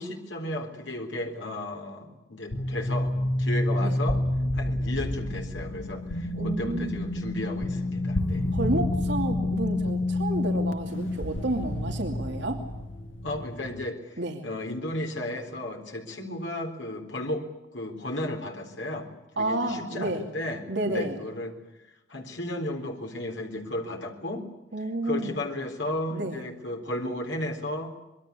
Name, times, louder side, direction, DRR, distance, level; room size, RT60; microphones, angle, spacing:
voice 1, 0.0-3.1 3.4-4.2 4.5-8.5 13.2-17.4 17.7-19.1 19.4-21.6 22.1-24.5 25.0-27.9, left 1 dB, 70° left, 3 dB, 3.9 m, -34 dB
sound 1, 2.5-13.8, left 1 dB, 90° left, 1.8 m, -29 dB
voice 2, 6.3-7.0 8.5-12.6 14.2-14.4 19.4-20.2 20.7-21.2 24.7-25.4 26.1-26.4, right 1 dB, 65° right, 3 dB, 2.6 m, -30 dB
25.5 x 22.5 x 8.4 m, 0.99 s
head